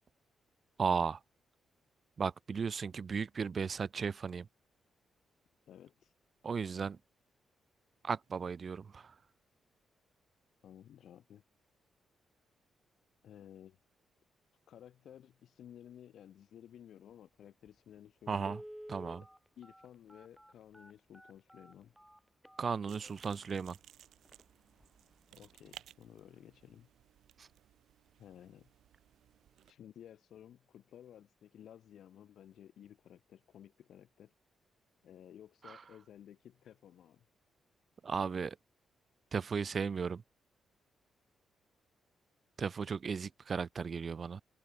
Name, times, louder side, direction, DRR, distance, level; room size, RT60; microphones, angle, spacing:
voice 1, 0.8-1.2 2.2-4.5 6.4-7.0 8.0-9.1 18.3-18.6 18.9-19.2 22.6-23.8 27.4-27.5 35.7-35.8 38.0-38.6 39.3-40.2 42.6-44.4, right 5 dB, 35° right, 0.6 m, -35 dB
voice 2, 5.7-6.1 10.6-11.4 13.2-13.8 14.7-18.6 18.9-19.1 19.6-21.9 25.4-26.9 28.2-28.7 29.6-34.3 35.0-37.2, left 10 dB, 65° left, 5.1 m, -55 dB
Telephone, 17.7-17.8 18.4-23.3 23.8-23.9 24.2-24.4 24.8-25.1 25.4-25.5, equal, ahead, 1.3 m, -51 dB
sound 1, 22.9-29.7, right 11 dB, 80° right, 3.9 m, -59 dB
wide cardioid pair, 180°, 0 cm